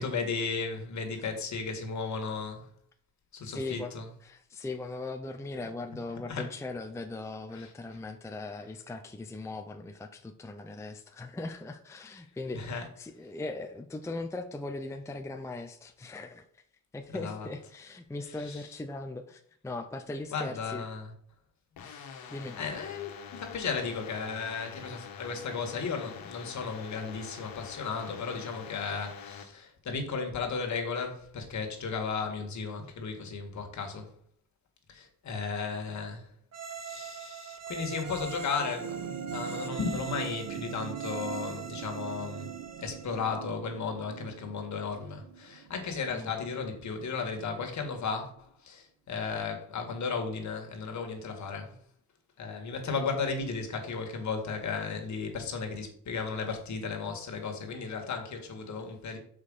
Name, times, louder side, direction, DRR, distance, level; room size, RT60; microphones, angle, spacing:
voice 1, 0.0-2.7 3.3-4.1 6.3-6.5 7.5-7.7 12.5-12.8 17.1-17.5 18.4-18.6 20.3-21.1 22.6-34.1 34.9-36.3 36.8-51.8 52.4-59.2, left 5 dB, 50° left, 1.9 m, -35 dB
voice 2, 3.4-3.9 4.2-16.6 16.9-20.8 22.3-22.6 46.1-46.3, left 2 dB, 10° left, 0.6 m, -39 dB
sound 1, 21.8-29.4, left 7 dB, 80° left, 1.5 m, -45 dB
sound 2, 36.5-43.2, right 5 dB, 45° right, 1.2 m, -42 dB
sound 3, 38.5-47.2 48.4-48.5, right 10 dB, 75° right, 1.3 m, -42 dB
6.3 x 5.0 x 5.5 m
cardioid pair, 105°, 36 cm